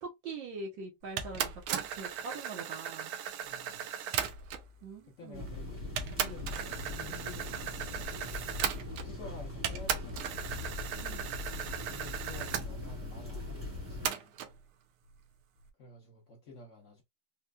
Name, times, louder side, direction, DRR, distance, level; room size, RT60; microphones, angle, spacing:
voice 1, 0.0-3.1 4.8-5.5 11.0-11.3, right 4 dB, 70° right, 1.5 m, -43 dB
sound 1, 1.2-4.7 5.5-5.6 6.0-9.3 9.6-12.7 14.1-14.5, right 9 dB, 90° right, 1.5 m, -36 dB
voice 2, 3.4-3.9 5.1-8.2 9.0-10.9 11.9-14.4 15.8-17.0, left 2 dB, 75° left, 0.7 m, -51 dB
sound 2, 5.3-14.1, left 2 dB, 10° right, 0.7 m, -41 dB
4.2 x 2.2 x 2.3 m
omnidirectional pair, 2.3 m